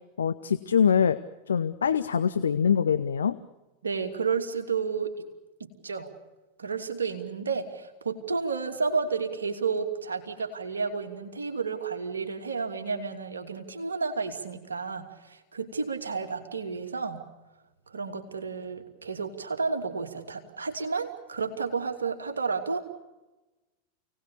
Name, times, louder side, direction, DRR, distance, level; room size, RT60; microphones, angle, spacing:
voice 1, 0.2-1.2 1.5-3.4, left 7 dB, 70° left, 13 dB, 0.8 m, -24 dB
voice 2, 3.8-5.1 5.6-6.1 6.6-17.2 17.9-22.9, right 5 dB, 70° right, 4 dB, 2.8 m, -31 dB
29.0 x 18.5 x 7.0 m, 1.1 s
figure-of-eight pair, 90°, 0 cm